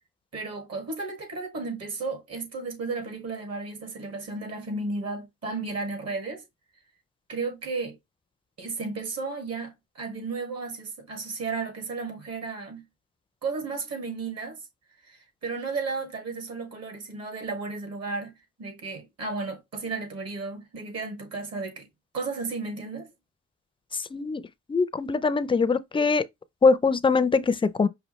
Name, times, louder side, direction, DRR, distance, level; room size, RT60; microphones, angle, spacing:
voice 1, 0.3-6.4 7.3-8.0 8.6-12.8 13.4-14.6 15.0-18.3 18.6-21.9 22.1-23.1, right 3 dB, 55° right, 1.9 m, -33 dB
voice 2, 24.1-24.4 24.7-26.2 26.6-27.9, left 4 dB, 15° left, 0.4 m, -22 dB
5.4 x 2.5 x 3.0 m
cardioid pair, 90°, 30 cm